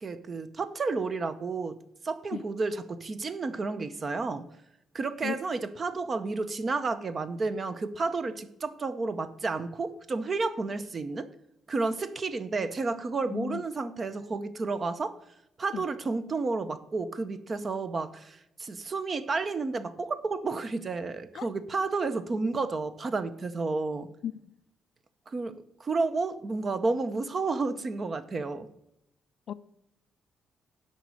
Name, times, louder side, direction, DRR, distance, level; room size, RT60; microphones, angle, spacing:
voice 1, 0.0-1.8 2.0-4.4 4.9-11.3 11.7-15.2 15.6-24.1 25.3-28.7, right 3 dB, 25° right, 0.6 m, -31 dB
voice 2, 13.3-13.6 15.7-15.8 21.3-21.5 24.2-24.3 29.5-29.6, left 9 dB, 50° left, 0.4 m, -34 dB
11.0 x 4.1 x 7.7 m
cardioid pair, 175°, 0 cm